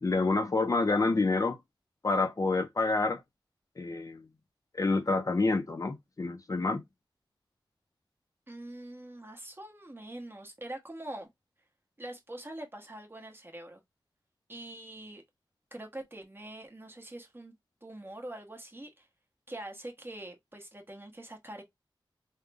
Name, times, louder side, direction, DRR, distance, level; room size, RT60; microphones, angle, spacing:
voice 1, 0.0-1.6 2.0-3.2 3.8-4.2 4.7-6.8, left 3 dB, 40° left, 0.5 m, -28 dB
voice 2, 8.5-11.3 12.0-13.8 14.5-15.2 15.7-17.5 17.8-19.1 19.5-21.6, right 1 dB, 25° right, 1.1 m, -44 dB
3.6 x 2.1 x 3.4 m
wide cardioid pair, 75°, 9 cm